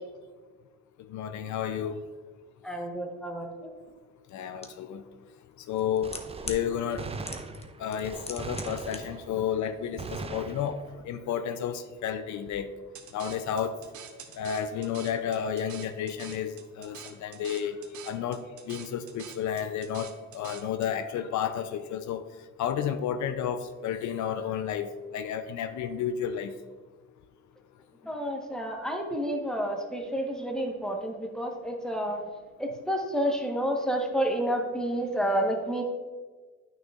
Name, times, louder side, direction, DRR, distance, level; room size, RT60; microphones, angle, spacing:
voice 1, 1.1-2.0 4.3-5.0 5.7-6.1 6.5-7.1 7.8-10.8 11.1-12.7 13.1-13.7 14.4-17.8 18.1-18.4 18.7-22.2 22.6-26.5, left 8 dB, 70° left, 9 dB, 0.5 m, -31 dB
voice 2, 2.6-3.7 28.0-32.2 32.6-35.8, equal, ahead, 1 dB, 1.1 m, -30 dB
sound 1, 4.6-4.7 5.7-6.6 7.3-7.7 7.9-9.0 9.2-9.3, left 3 dB, 20° left, 0.8 m, -38 dB
Gunshot gunfire, 6.0-9.6 10.0-11.1, right 4 dB, 20° right, 0.4 m, -40 dB
sound 2, 13.0-20.9, right 8 dB, 75° right, 0.7 m, -47 dB
9.0 x 6.2 x 2.4 m, 1.4 s
cardioid pair, 90°, 30 cm